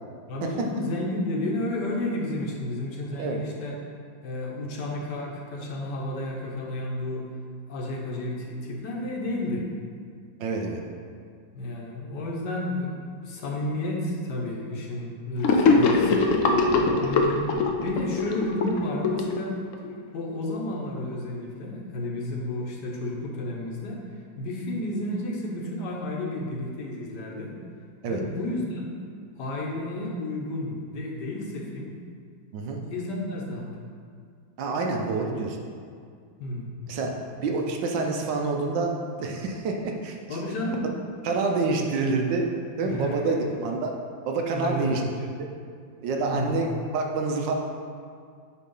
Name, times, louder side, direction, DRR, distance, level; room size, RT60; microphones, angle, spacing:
voice 1, 0.3-3.8 4.2-7.3 7.7-9.7 11.5-16.3 17.0-19.6 20.1-24.0 24.4-27.5 28.0-28.9 29.4-31.9 32.9-33.8 36.4-36.7 40.3-40.9 42.7-43.5 44.5-45.1 46.2-46.6, left 1 dB, 65° left, -1 dB, 1.4 m, -31 dB
voice 2, 10.4-10.8 16.7-16.9 28.0-28.2 32.5-32.8 34.6-35.6 36.9-37.1 37.4-38.9 39.2-40.2 41.2-42.5 42.8-43.9 44.3-45.0 46.0-47.5, right 3 dB, 75° right, 2 dB, 1.3 m, -27 dB
Gurgling / Sink (filling or washing), 15.4-19.9, left 3 dB, 85° left, 0.7 m, -22 dB
8.4 x 3.0 x 5.4 m, 2.2 s
omnidirectional pair, 2.1 m